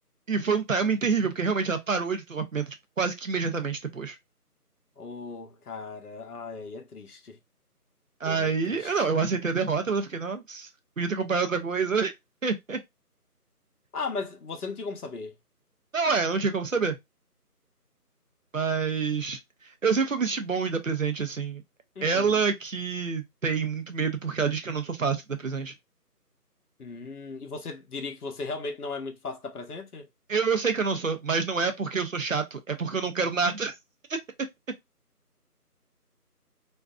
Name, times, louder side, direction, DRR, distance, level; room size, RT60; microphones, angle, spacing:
voice 1, 0.3-4.2 8.2-10.7 11.0-12.1 12.4-12.8 15.9-17.0 18.5-19.4 19.8-21.6 22.0-25.7 30.3-33.7 34.1-34.2, right 5 dB, 55° right, 0.5 m, -27 dB
voice 2, 5.0-7.4 8.2-9.0 13.9-15.4 22.0-22.4 26.8-30.1, left 4 dB, 70° left, 0.8 m, -37 dB
2.5 x 2.2 x 2.3 m
figure-of-eight pair, 175°, 47 cm